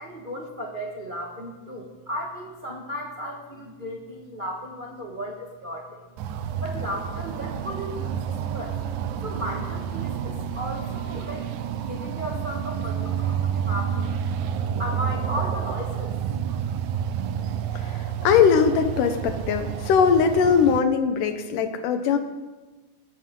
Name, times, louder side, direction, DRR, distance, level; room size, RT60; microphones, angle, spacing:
voice 1, 0.0-6.1 6.6-8.8 9.2-11.5 11.7-14.1 14.6-16.1, equal, 30° right, -1 dB, 0.9 m, -35 dB
sound 1, 6.2-20.8, right 8 dB, 75° right, 2.1 m, -29 dB
voice 2, 17.8-22.2, left 6 dB, 90° left, 7 dB, 2.7 m, -21 dB
20.5 x 12.5 x 3.9 m, 1.2 s
omnidirectional pair, 3.6 m